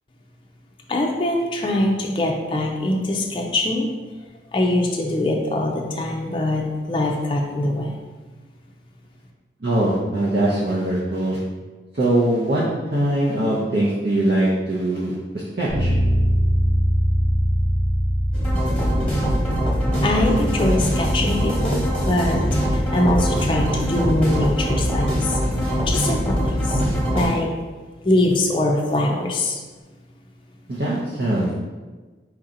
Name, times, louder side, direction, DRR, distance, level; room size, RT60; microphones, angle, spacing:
voice 1, 0.9-3.9 4.5-8.0 20.0-21.8 22.0-22.4 22.7-25.4 25.9-26.8 27.1-27.5 28.0-29.6, left 1 dB, 30° left, 0 dB, 0.4 m, -22 dB
voice 2, 9.6-11.4 11.9-12.6 12.9-15.1 15.6-15.9 30.7-31.6, right 1 dB, 55° right, -7 dB, 0.7 m, -21 dB
Bass guitar, 15.7-25.5, equal, 85° right, 1.0 m, -24 dB
sound 1, 18.3-27.3, equal, 5° left, 1.1 m, -22 dB
4.5 x 2.8 x 3.8 m, 1.3 s
head